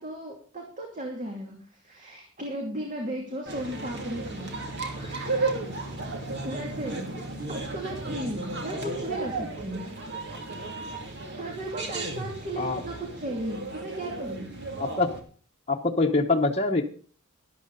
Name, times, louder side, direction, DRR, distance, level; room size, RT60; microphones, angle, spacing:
voice 1, 0.0-4.6 5.0-5.5 6.4-9.8 11.4-14.5, right 1 dB, 35° right, 0 dB, 2.6 m, -36 dB
sound 1, 3.5-15.2, right 2 dB, 55° right, 2.6 m, -34 dB
voice 2, 14.8-15.1 15.7-16.8, left 3 dB, 30° left, 0 dB, 1.1 m, -24 dB
13.0 x 11.5 x 4.1 m, 0.41 s
head